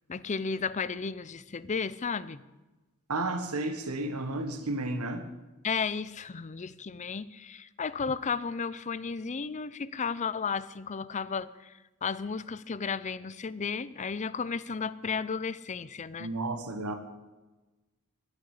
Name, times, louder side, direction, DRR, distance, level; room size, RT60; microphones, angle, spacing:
voice 1, 0.1-2.4 5.6-16.3, left 5 dB, 30° left, 18 dB, 0.5 m, -34 dB
voice 2, 3.1-5.2 16.2-16.9, right 2 dB, 80° right, 7 dB, 1.5 m, -32 dB
11.5 x 11.5 x 8.4 m, 1.1 s
head